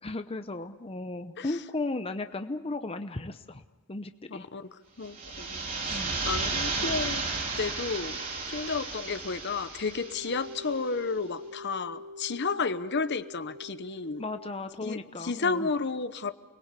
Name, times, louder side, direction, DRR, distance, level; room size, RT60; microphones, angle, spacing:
voice 1, 0.0-3.6 3.9-4.4 5.9-6.2 14.2-15.7, left 2 dB, 25° left, 8 dB, 0.8 m, -35 dB
voice 2, 4.3-7.2 7.6-14.2 14.8-16.3, left 4 dB, 55° left, 12 dB, 1.0 m, -32 dB
sound 1, 5.0-10.7, right 3 dB, 40° right, 4.0 m, -33 dB
sound 2, 9.7-14.6, left 2 dB, 80° right, 3.3 m, -45 dB
29.5 x 21.0 x 8.4 m, 1.2 s
head